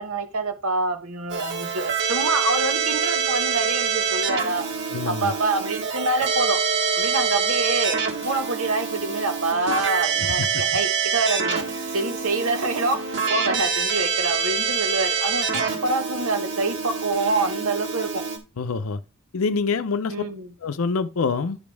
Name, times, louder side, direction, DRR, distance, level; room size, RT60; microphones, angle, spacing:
voice 1, 0.0-4.6 5.1-6.6 7.0-8.0 8.2-13.0 13.3-18.2 20.1-20.5, right 3 dB, 90° right, 1.2 m, -26 dB
Keyboard (musical), 1.3-18.4, right 6 dB, 60° right, 1.9 m, -26 dB
voice 2, 4.9-5.3 10.4-10.5 18.6-19.0 19.3-20.1 20.6-21.6, left 4 dB, 85° left, 0.6 m, -25 dB
11.5 x 5.2 x 3.4 m
head